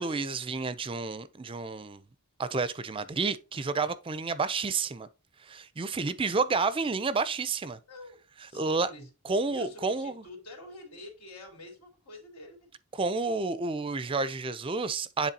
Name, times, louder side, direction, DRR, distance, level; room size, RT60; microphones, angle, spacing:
voice 1, 0.0-2.0 2.4-5.1 5.4-7.8 8.5-8.9 9.2-10.2 12.9-15.3, right 4 dB, 25° right, 0.4 m, -30 dB
voice 2, 8.5-9.1 9.5-12.7, left 1 dB, 85° left, 3.2 m, -46 dB
10.0 x 3.5 x 2.8 m
head